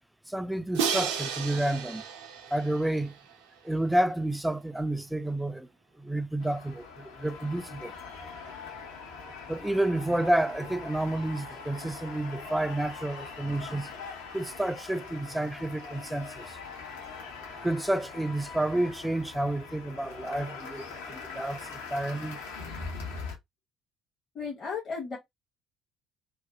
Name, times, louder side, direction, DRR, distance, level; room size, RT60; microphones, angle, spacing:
voice 1, 0.3-2.0 2.5-3.1 3.6-5.7 6.0-8.0 9.5-13.9 14.3-16.6 17.6-22.4, right 1 dB, 5° right, 0.3 m, -30 dB
Crash cymbal, 0.7-3.7, right 7 dB, 70° right, 0.4 m, -33 dB
sound 1, 6.4-23.4, left 4 dB, 75° left, 0.7 m, -42 dB
voice 2, 24.3-25.2, left 5 dB, 40° left, 0.9 m, -35 dB
2.5 x 2.3 x 2.2 m
figure-of-eight pair, 55°, 0 cm